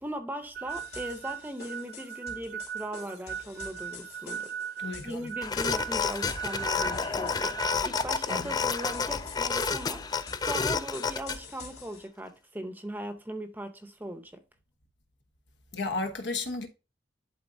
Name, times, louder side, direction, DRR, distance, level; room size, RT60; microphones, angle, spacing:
voice 1, 0.0-4.5 5.0-10.0 10.4-14.4, right 1 dB, 10° right, 0.7 m, -39 dB
sound 1, 0.6-7.8, right 8 dB, 75° right, 0.4 m, -39 dB
sound 2, 0.7-12.1, left 4 dB, 60° left, 2.6 m, -48 dB
voice 2, 4.8-5.2 8.3-8.5 15.7-16.7, left 3 dB, 80° left, 1.1 m, -33 dB
sound 3, 5.4-11.4, left 5 dB, 20° left, 0.3 m, -30 dB
11.5 x 3.9 x 2.7 m
head